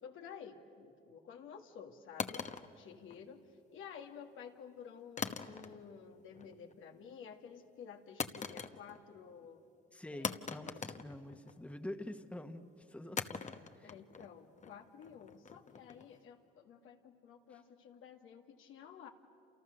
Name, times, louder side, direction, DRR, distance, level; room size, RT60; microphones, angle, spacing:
voice 1, 0.0-3.4 3.7-9.6 10.1-10.4 13.8-19.1, left 7 dB, 85° left, 4 dB, 2.0 m, -52 dB
sound 1, 2.2-3.6 5.2-6.0 6.3-6.8 8.2-9.1 9.4-9.5 10.2-11.8 13.2-16.2, left 5 dB, 35° left, 1.1 m, -42 dB
voice 2, 9.9-13.4 13.8-13.9 17.5-17.6, left 1 dB, 5° left, 8 dB, 1.4 m, -46 dB
29.0 x 28.0 x 6.7 m, 2.6 s
cardioid pair, 90°, 20 cm